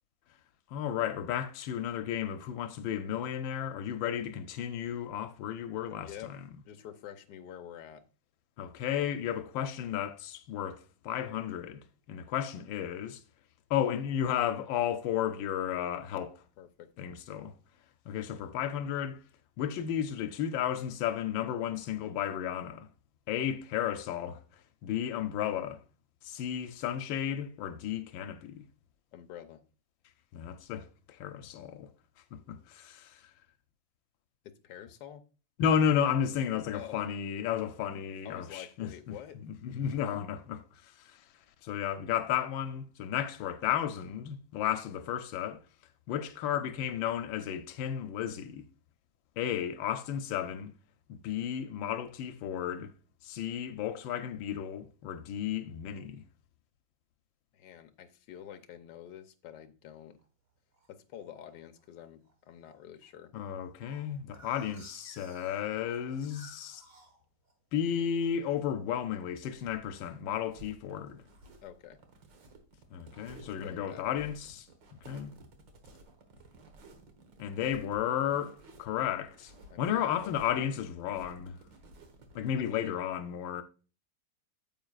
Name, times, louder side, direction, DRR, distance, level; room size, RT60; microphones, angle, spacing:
voice 1, 0.7-6.1 8.6-13.2 13.7-16.4 17.0-17.5 18.1-19.2 19.6-22.9 23.3-24.4 24.8-25.8 26.2-28.6 30.3-31.9 32.3-33.2 35.6-39.1 39.6-41.2 41.6-45.6 46.1-48.6 49.4-50.7 51.1-52.9 53.2-56.2 63.3-66.8 67.7-71.2 72.9-74.7 75.0-75.3 77.4-79.5 79.8-81.6 82.3-83.6, left 9 dB, 90° left, 1.4 m, -33 dB
voice 2, 6.0-6.4 6.6-8.0 16.6-16.9 29.1-29.6 34.4-35.2 36.7-37.0 38.2-39.4 43.6-43.8 57.5-60.2 60.9-63.3 71.6-72.0 73.6-74.1 79.7-80.3 82.6-83.0, left 10 dB, 70° left, 1.3 m, -47 dB
sound 1, 60.2-60.9 61.5-61.9 62.3-62.4 62.6-62.7 63.0-67.8 68.2-68.6 68.9-69.2 69.6-70.5 71.0-71.5, right 2 dB, 35° right, 1.5 m, -57 dB
sound 2, 69.4-82.6, right 2 dB, 70° right, 2.0 m, -55 dB
9.2 x 7.6 x 2.4 m
omnidirectional pair, 2.1 m